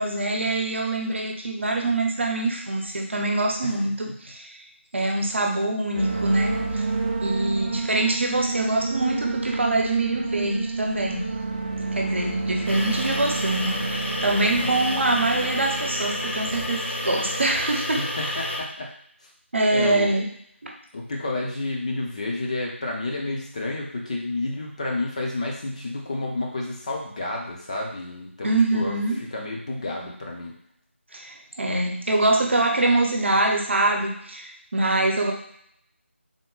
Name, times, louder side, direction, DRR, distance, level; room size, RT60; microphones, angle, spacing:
voice 1, 0.0-4.5 4.9-6.8 7.2-11.3 11.9-18.0 19.5-20.3 20.6-20.7 28.4-29.2 31.1-35.3, right 2 dB, 60° right, 2 dB, 0.8 m, -24 dB
sound 1, 5.9-17.5, right 3 dB, 35° right, 0.5 m, -30 dB
sound 2, 12.7-18.6, left 1 dB, 55° left, 0.9 m, -30 dB
voice 2, 18.0-18.9 19.7-20.2 20.9-28.9 29.3-30.6, left 2 dB, 30° left, -1 dB, 0.7 m, -30 dB
3.6 x 2.2 x 3.8 m, 0.68 s
figure-of-eight pair, 165°, 7 cm